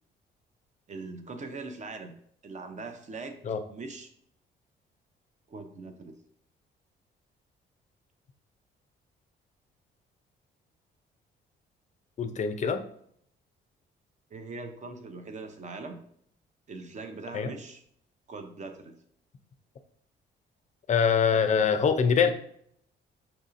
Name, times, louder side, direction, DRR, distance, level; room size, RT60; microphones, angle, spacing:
voice 1, 0.9-2.2 2.4-3.4 3.7-4.1 5.5-6.2 14.3-16.0 16.7-17.8 18.3-19.0, right 3 dB, 35° right, 6 dB, 0.6 m, -41 dB
voice 2, 12.2-12.8 17.3-17.5 20.9-22.3, left 6 dB, 35° left, 9 dB, 0.4 m, -24 dB
5.6 x 2.7 x 2.5 m, 0.67 s
cardioid pair, 90°, 20 cm